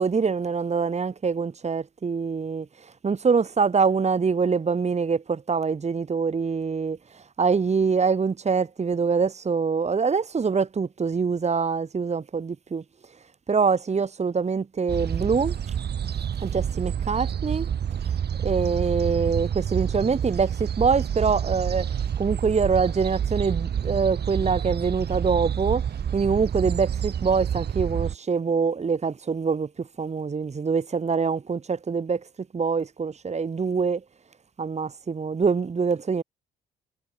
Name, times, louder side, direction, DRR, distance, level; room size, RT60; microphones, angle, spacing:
voice 1, 0.0-12.8 13.5-15.5 16.4-17.7 18.4-25.8 26.1-32.3 32.5-34.0 34.6-36.2, right 5 dB, 35° right, 2.6 m, -24 dB
sound 1, 14.9-28.2, right 8 dB, 55° right, 3.0 m, -28 dB
cardioid pair, 90°, 20 cm